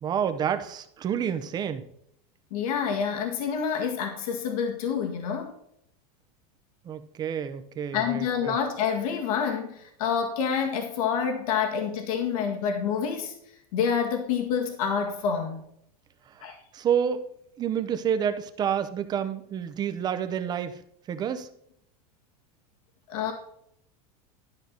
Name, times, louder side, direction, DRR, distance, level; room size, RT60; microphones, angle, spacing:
voice 1, 0.0-1.8 6.8-8.6 16.3-17.3 17.6-20.8 21.1-21.5, right 8 dB, 20° right, 10 dB, 0.7 m, -29 dB
voice 2, 2.5-5.5 7.9-13.4 13.7-15.7 16.4-16.6 23.1-23.3, left 7 dB, 70° left, 3 dB, 1.7 m, -27 dB
11.5 x 5.8 x 3.9 m, 0.72 s
supercardioid pair, 155°, 19 cm